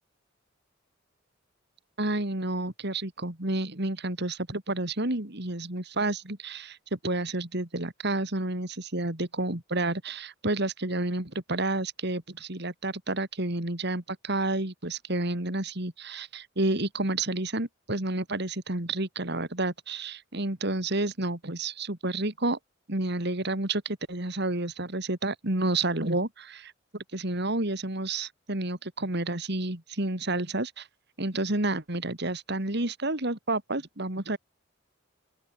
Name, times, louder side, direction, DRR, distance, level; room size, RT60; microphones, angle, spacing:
voice 1, 2.0-22.6 22.9-30.9 31.2-34.4, right 2 dB, 60° right, 3.4 m, -30 dB
open air
head